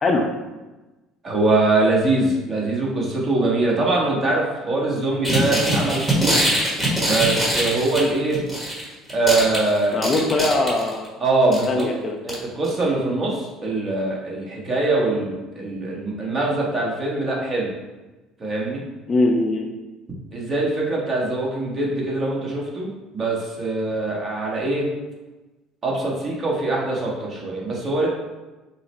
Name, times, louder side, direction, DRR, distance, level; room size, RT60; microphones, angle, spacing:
voice 1, 1.2-6.4 7.0-8.4 9.1-10.1 11.2-11.9 12.2-17.7 18.4-18.8 20.3-24.9 25.8-28.1, right 2 dB, 35° right, -3 dB, 1.3 m, -23 dB
sound 1, 5.2-8.8 9.1-11.1 11.5-11.8 12.3-12.4 12.6-12.7, right 1 dB, 15° right, 1.3 m, -22 dB
voice 2, 9.9-11.1 11.7-12.2 19.1-19.7, left 2 dB, 35° left, 2 dB, 0.5 m, -21 dB
5.5 x 2.1 x 3.2 m, 1.1 s
figure-of-eight pair, 60°, 0 cm